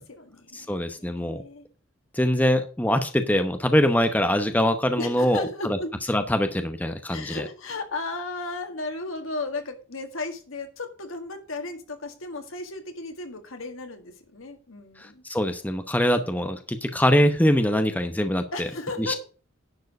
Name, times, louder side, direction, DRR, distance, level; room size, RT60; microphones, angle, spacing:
voice 1, 0.0-1.7 5.0-5.9 7.1-15.2 18.5-19.2, left 2 dB, 85° left, 5 dB, 1.9 m, -35 dB
voice 2, 0.5-1.4 2.1-5.8 6.1-7.4 15.0-18.7 19.0-19.1, equal, 10° left, 7 dB, 0.8 m, -23 dB
10.5 x 4.7 x 6.3 m, 0.37 s
head